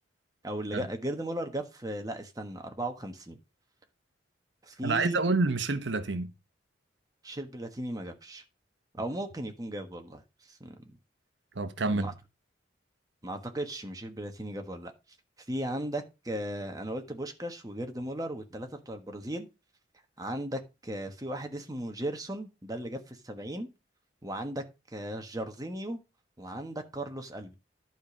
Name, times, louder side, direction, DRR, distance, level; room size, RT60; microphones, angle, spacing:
voice 1, 0.4-3.4 4.6-5.2 7.2-8.4 8.9-10.2 10.5-10.9 11.8-12.1 13.2-14.9 15.5-19.5 20.2-23.7 24.2-26.0 26.4-27.5, right 1 dB, 20° right, 1.4 m, -36 dB
voice 2, 4.8-6.3 11.6-12.1, right 3 dB, 75° right, 1.0 m, -28 dB
11.5 x 5.1 x 6.2 m
head